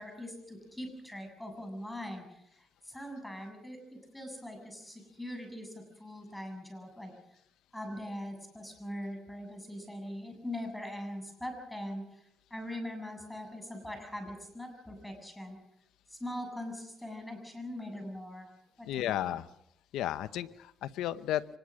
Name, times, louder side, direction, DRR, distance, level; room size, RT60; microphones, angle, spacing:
voice 1, 0.0-2.4 2.8-7.1 7.7-12.2 12.5-15.6 16.1-18.5 18.8-19.4, left 1 dB, 5° left, 4 dB, 7.5 m, -42 dB
voice 2, 18.8-19.5 19.9-21.4, left 12 dB, 85° left, 13 dB, 0.8 m, -33 dB
24.5 x 20.5 x 6.3 m, 0.78 s
cardioid pair, 90°, 0 cm